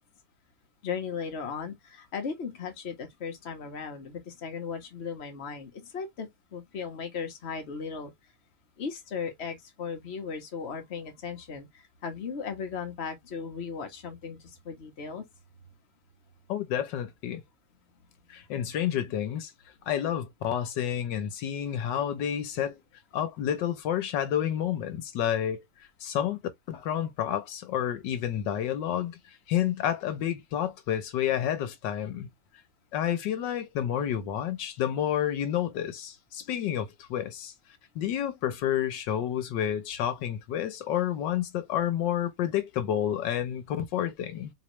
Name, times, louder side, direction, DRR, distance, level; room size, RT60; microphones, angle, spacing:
voice 1, 0.8-8.1 8.8-15.3, left 6 dB, 40° left, 1.2 m, -37 dB
voice 2, 16.5-17.4 18.3-19.5 19.9-22.8 23.1-25.6 26.0-26.4 26.7-29.2 29.5-32.3 32.9-37.5 37.9-44.5, left 10 dB, 90° left, 1.5 m, -29 dB
4.2 x 3.1 x 3.1 m
omnidirectional pair, 1.9 m